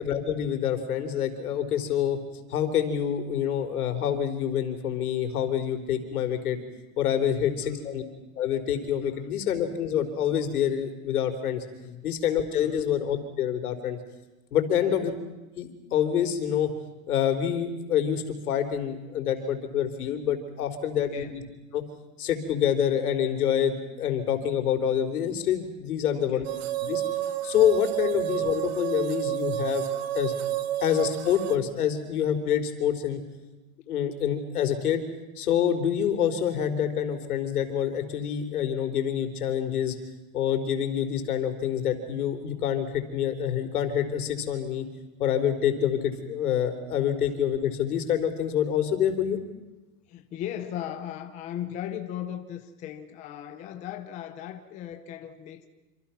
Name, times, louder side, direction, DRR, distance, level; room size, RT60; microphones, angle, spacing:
voice 1, 0.0-2.2 2.5-6.6 7.0-8.0 8.4-11.6 12.0-14.0 14.5-15.1 15.6-16.7 17.1-21.4 21.7-21.8 22.2-26.5 26.8-27.0 27.4-29.9 30.1-30.3 30.8-33.2 33.9-35.0 35.4-39.9 40.3-44.8 45.2-49.4, left 9 dB, 70° left, 7 dB, 4.0 m, -26 dB
voice 2, 7.4-7.9 9.0-9.3 11.8-12.1 12.6-12.9 14.8-15.2 20.9-21.4 26.1-26.5 50.1-55.7, left 11 dB, 15° left, 7 dB, 0.9 m, -38 dB
sound 1, 26.4-31.6, right 12 dB, 40° right, 1.5 m, -30 dB
27.5 x 26.5 x 5.9 m, 1.1 s
supercardioid pair, 165°, 45 cm